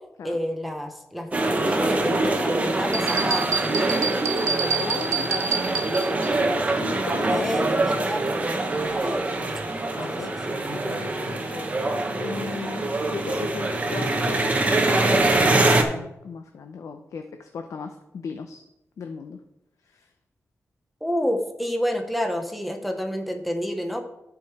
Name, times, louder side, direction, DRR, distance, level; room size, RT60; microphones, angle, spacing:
voice 1, 0.2-3.9 7.3-8.4 8.8-9.3 10.1-10.6 21.0-24.0, equal, ahead, 4 dB, 0.8 m, -29 dB
sound 1, 1.3-15.8, right 2 dB, 25° right, 0.9 m, -24 dB
sound 2, 2.9-6.3, right 5 dB, 70° right, 0.7 m, -28 dB
voice 2, 4.7-5.4 6.5-7.5 10.0-10.3 10.7-18.6 19.0-19.4 19.9-20.1, left 5 dB, 85° left, 6 dB, 0.6 m, -37 dB
11.5 x 4.9 x 4.7 m, 0.86 s
wide cardioid pair, 175°, 5 cm